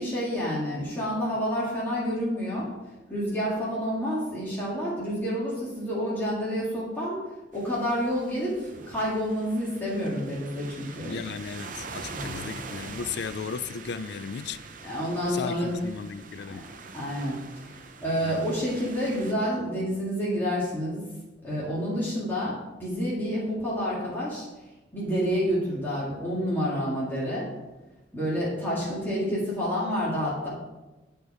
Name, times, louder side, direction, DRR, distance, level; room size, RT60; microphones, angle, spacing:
voice 1, 0.0-2.7 3.1-7.2 7.5-11.2 12.1-12.5 14.8-15.8 16.5-16.6 16.9-17.8 18.0-21.0 21.4-24.5 24.9-27.5 28.1-30.5, equal, 10° left, -8 dB, 1.9 m, -29 dB
sound 1, 7.5-19.3, right 4 dB, 50° right, 0.7 m, -43 dB
voice 2, 11.0-14.6 15.3-16.6 18.2-18.5, left 6 dB, 65° left, 14 dB, 0.4 m, -35 dB
9.6 x 4.5 x 4.9 m, 1.1 s
head